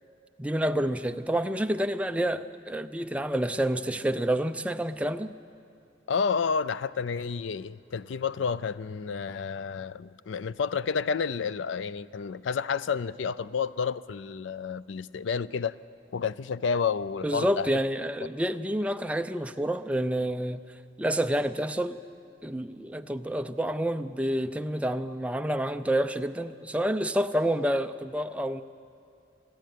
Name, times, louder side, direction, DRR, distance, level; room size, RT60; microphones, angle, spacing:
voice 1, 0.4-5.3 17.2-20.6 21.0-22.0 22.4-28.6, right 1 dB, 5° right, 0.4 m, -28 dB
voice 2, 6.1-15.8 16.1-17.7, left 5 dB, 90° left, 0.4 m, -30 dB
27.0 x 10.0 x 9.3 m
head